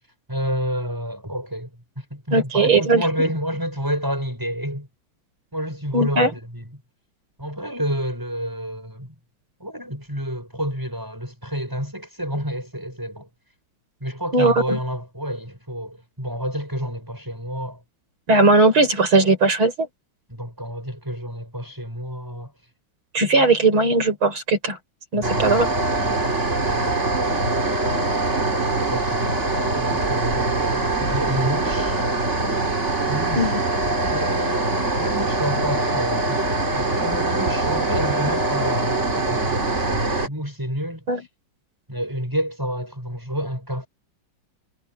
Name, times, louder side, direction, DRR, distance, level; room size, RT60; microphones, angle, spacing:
voice 1, 0.3-1.7 2.0-4.9 5.5-6.8 7.4-9.1 9.6-13.3 14.0-17.8 20.3-22.5 25.1-27.8 28.9-29.3 29.5-32.0 33.1-33.6 33.8-36.4 36.7-39.6 39.9-41.0 41.9-43.9, equal, 10° right, 6.7 m, -29 dB
voice 2, 2.3-3.1 5.9-6.3 14.3-14.8 18.3-19.9 23.1-24.8 25.1-25.7 33.4-33.6 41.1-41.2, right 3 dB, 90° right, 6.6 m, -18 dB
sound 1, 25.2-40.3, right 2 dB, 35° right, 2.9 m, -23 dB
omnidirectional pair, 2.2 m